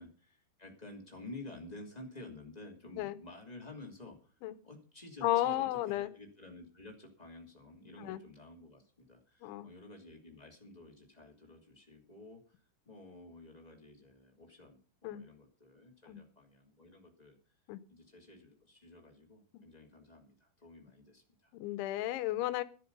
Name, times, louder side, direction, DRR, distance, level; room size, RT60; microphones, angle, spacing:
voice 1, 0.0-17.4 17.9-21.5, left 2 dB, 20° left, 1 dB, 1.0 m, -52 dB
voice 2, 5.2-6.1 8.0-8.2 9.4-9.7 15.0-15.2 16.1-16.2 17.7-17.8 21.5-22.6, left 15 dB, 75° left, 14 dB, 3.1 m, -33 dB
13.0 x 12.0 x 5.4 m, 0.37 s
omnidirectional pair, 5.7 m